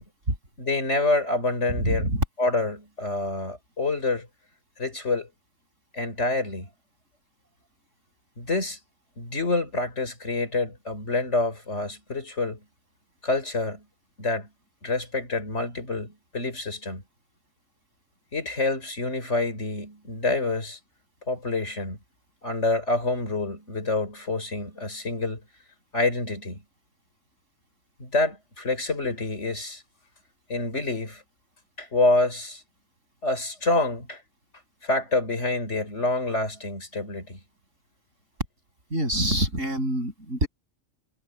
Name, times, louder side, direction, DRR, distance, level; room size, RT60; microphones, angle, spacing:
voice 1, 0.6-2.1 2.4-4.3 4.8-5.3 5.9-6.7 8.4-8.8 9.2-12.6 13.2-13.8 14.2-14.5 14.8-17.0 18.3-20.8 21.3-22.0 22.4-25.4 25.9-26.6 28.0-29.8 30.5-31.2 31.8-32.6 33.2-34.2 34.8-37.4, left 2 dB, 65° left, 5.0 m, -27 dB
voice 2, 1.7-2.2 38.9-40.5, right 1 dB, 80° right, 8.1 m, -25 dB
omnidirectional pair, 1.3 m